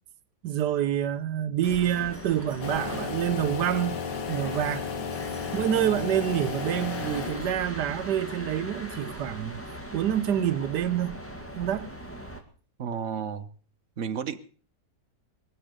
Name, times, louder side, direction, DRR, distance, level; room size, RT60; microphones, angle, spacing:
voice 1, 0.4-4.0 4.3-4.9 5.5-9.6 9.9-11.2 11.5-11.9, right 10 dB, 90° right, 1.5 m, -27 dB
sound 1, 1.6-12.4, equal, 10° left, 2.0 m, -40 dB
sound 2, 2.6-7.8, left 7 dB, 85° left, 1.8 m, -34 dB
voice 2, 12.8-13.5 14.0-14.4, right 7 dB, 50° right, 1.3 m, -32 dB
22.5 x 7.7 x 6.6 m
omnidirectional pair, 1.8 m